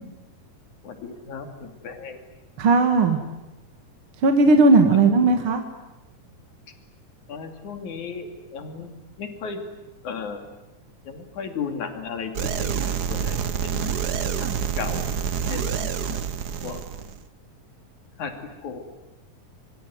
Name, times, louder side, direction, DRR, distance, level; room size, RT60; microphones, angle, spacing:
voice 1, 0.8-2.2 7.3-8.9 9.2-9.6 10.0-10.5 11.1-14.0 14.4-14.5 14.8-15.1 15.5-16.2 16.6-16.8 18.2-18.3 18.6-18.8, left 5 dB, 75° left, 6 dB, 4.1 m, -35 dB
voice 2, 2.6-3.2 4.2-5.6, right 3 dB, 50° right, 6 dB, 2.5 m, -17 dB
sound 1, 12.3-17.2, right 7 dB, 65° right, 0.9 m, -27 dB
25.0 x 24.5 x 9.5 m, 0.98 s
omnidirectional pair, 3.4 m